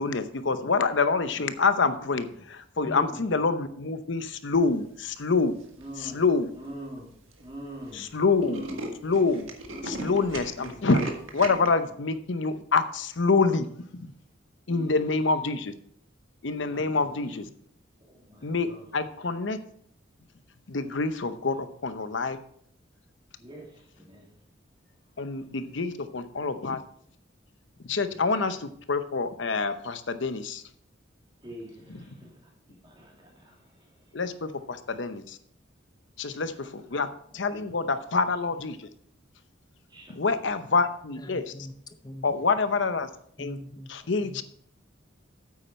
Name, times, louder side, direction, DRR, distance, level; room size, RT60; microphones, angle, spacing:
voice 1, 0.0-5.6 6.0-6.5 8.0-8.6 9.0-9.5 9.9-11.0 11.3-13.7 13.9-14.1 14.7-15.7 16.4-17.4 18.4-19.6 20.7-22.4 25.2-26.8 27.8-30.6 34.1-35.4 36.2-37.1 37.3-38.9 40.1-41.5 42.2-43.1 43.4-43.6 43.9-44.4, left 4 dB, 65° left, 11 dB, 0.8 m, -26 dB
voice 2, 2.0-2.3 2.8-3.4 5.8-6.2 6.5-7.1 7.4-8.9 9.7-10.1 10.6-10.9 14.7-15.1 16.6-17.4 18.1-18.9 23.4-24.3 25.2-25.3 28.1-28.2 31.4-34.2 36.3-37.0 37.3-37.7 38.1-38.2 39.9-40.5 42.3-42.6 44.0-44.1, right 1 dB, 25° right, -1 dB, 2.7 m, -45 dB
Tools, 5.6-6.0 6.6-6.7 7.0-7.1 7.3-7.5 7.8-7.9 8.2-11.7, right 2 dB, 90° right, 1.7 m, -37 dB
voice 3, 41.2-42.4 43.4-43.9 44.2-44.4, equal, 20° left, 9 dB, 0.7 m, -43 dB
8.7 x 8.5 x 4.3 m, 0.63 s
head